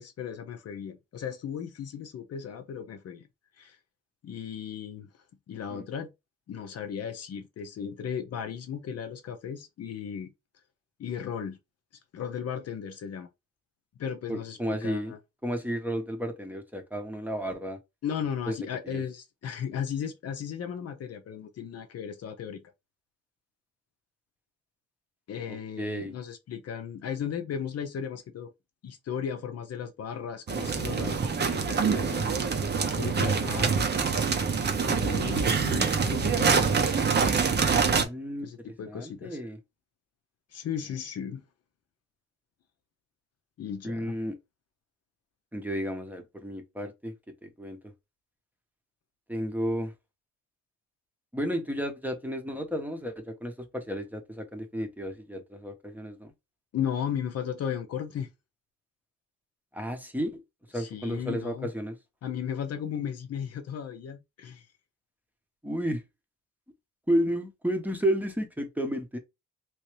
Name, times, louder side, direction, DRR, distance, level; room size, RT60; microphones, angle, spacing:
voice 1, 0.0-3.3 3.6-3.8 4.2-5.1 5.5-6.1 6.5-10.3 11.0-11.6 12.1-13.3 14.0-15.2 18.0-22.6 25.3-28.5 28.8-32.4 33.0-33.9 35.0-36.8 38.4-39.4 40.5-41.4 43.6-44.1 56.7-58.3 60.7-61.7 62.2-64.6, left 8 dB, 55° left, 0.7 m, -35 dB
voice 2, 14.3-15.2 15.4-17.8 18.5-18.6 18.8-19.0 25.5-26.1 37.8-39.6 43.8-44.4 45.5-47.1 47.4-47.8 49.3-49.9 51.3-56.3 59.7-60.4 60.7-62.0 65.6-66.0 67.1-69.2, equal, 5° right, 0.8 m, -32 dB
sound 1, 30.5-38.0, right 5 dB, 35° right, 0.7 m, -25 dB
3.1 x 2.7 x 3.2 m
cardioid pair, 90°, 30 cm